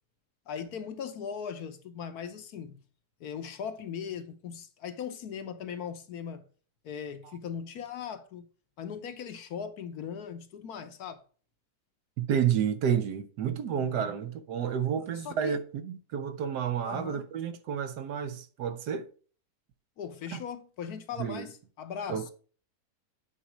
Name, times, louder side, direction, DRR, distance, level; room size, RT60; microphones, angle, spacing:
voice 1, 0.5-2.8 3.2-6.4 6.8-8.5 8.8-11.2 13.8-14.1 15.2-15.6 16.8-17.2 20.0-22.2, left 7 dB, 65° left, 1.3 m, -39 dB
voice 2, 12.2-19.1 20.3-20.4 21.2-21.5 22.1-22.3, right 8 dB, 75° right, 1.4 m, -30 dB
9.3 x 4.3 x 5.0 m
omnidirectional pair, 1.8 m